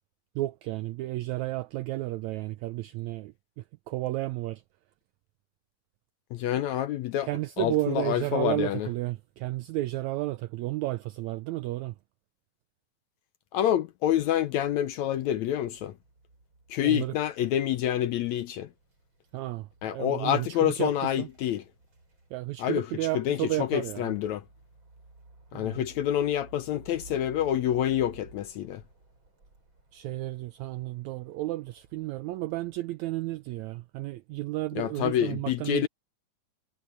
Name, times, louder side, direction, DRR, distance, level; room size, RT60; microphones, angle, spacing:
voice 1, 0.4-4.6 7.2-12.0 16.8-17.2 19.3-21.3 22.3-24.1 25.5-25.9 29.9-35.9, right 17 dB, 85° right, 1.6 m, -32 dB
voice 2, 6.3-7.3 7.6-8.9 13.5-16.0 16.7-18.7 19.8-21.6 22.6-22.9 23.1-24.5 25.5-28.8 34.8-35.9, left 11 dB, 75° left, 1.8 m, -27 dB
sound 1, 14.1-32.8, right 2 dB, 35° right, 6.2 m, -55 dB
omnidirectional pair, 3.8 m